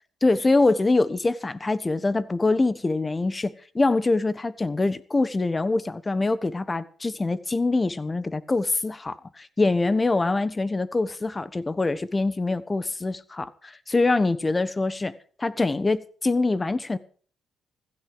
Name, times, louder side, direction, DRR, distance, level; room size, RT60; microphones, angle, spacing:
voice 1, 0.2-17.0, left 3 dB, 20° left, 1.2 m, -24 dB
16.0 x 14.5 x 5.0 m
cardioid pair, 90°, 0 cm